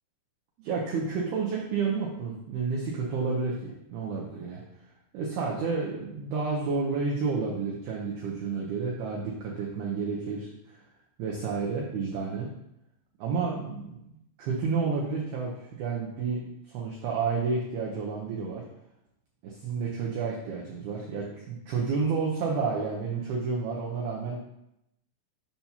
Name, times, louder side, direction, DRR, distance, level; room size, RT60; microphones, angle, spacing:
voice 1, 0.6-4.6 5.1-10.8 11.2-12.5 13.2-14.0 14.4-18.6 19.4-24.4, right 4 dB, 85° right, -3 dB, 2.1 m, -30 dB
7.2 x 5.9 x 2.8 m, 0.82 s
omnidirectional pair, 5.5 m